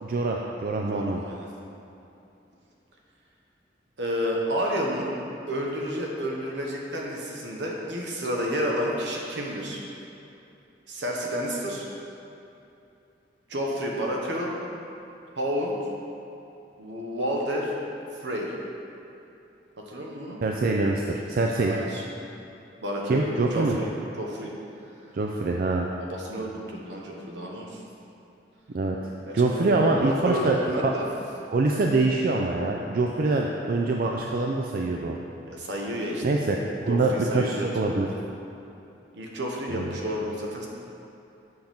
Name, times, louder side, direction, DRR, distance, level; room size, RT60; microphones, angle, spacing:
voice 1, 0.0-1.2 20.4-21.7 23.0-23.7 25.1-25.9 28.7-30.9 31.5-35.2 36.2-36.6 36.8-38.1 39.7-39.9, right 3 dB, 55° right, 0 dB, 0.4 m, -25 dB
voice 2, 0.9-1.5 4.0-5.1 5.5-9.8 10.9-11.9 13.5-14.5 15.3-15.7 16.8-17.7 18.2-18.5 19.8-20.4 21.7-22.0 22.8-23.9 24.2-24.5 26.0-27.8 29.3-29.7 30.0-31.0 35.5-36.4 36.9-38.1 39.1-40.7, equal, 80° right, -2 dB, 1.1 m, -30 dB
7.8 x 5.8 x 3.5 m, 2.8 s
head